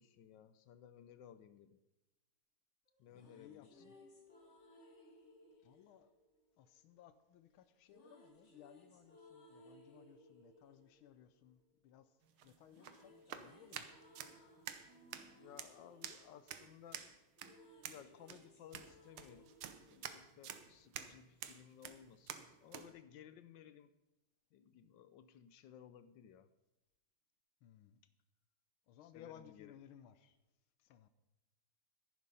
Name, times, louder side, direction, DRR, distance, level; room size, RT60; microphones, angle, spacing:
voice 1, 0.0-1.8 3.0-3.7 15.1-17.1 17.9-19.5 19.9-23.9 24.5-26.5 29.1-29.7, left 9 dB, 75° left, 1.2 m, -58 dB
sound 1, 2.9-7.0 7.9-12.1 12.4-20.9, left 1 dB, 35° left, 2.0 m, -64 dB
voice 2, 3.1-3.9 5.6-6.1 6.6-13.9 27.6-28.0 28.9-30.4 30.8-31.1, left 10 dB, 90° left, 1.5 m, -61 dB
sound 2, 12.2-22.9, right 9 dB, 90° right, 1.7 m, -50 dB
11.5 x 11.0 x 5.4 m
omnidirectional pair, 2.2 m